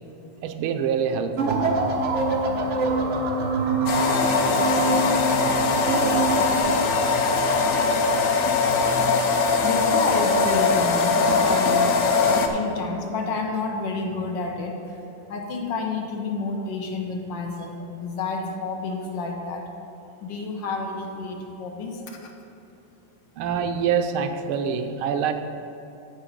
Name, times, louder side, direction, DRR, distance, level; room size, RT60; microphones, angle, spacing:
voice 1, 0.4-1.6 23.4-25.3, right 7 dB, 85° right, 7 dB, 1.5 m, -25 dB
sound 1, 1.4-6.6, right 2 dB, 60° right, 0.7 m, -24 dB
sound 2, 3.9-12.5, left 4 dB, 80° left, 0.7 m, -21 dB
voice 2, 9.2-15.0 15.3-19.6 20.2-22.3, left 3 dB, 65° left, 2 dB, 1.5 m, -30 dB
13.5 x 4.5 x 5.2 m, 2.9 s
omnidirectional pair, 2.3 m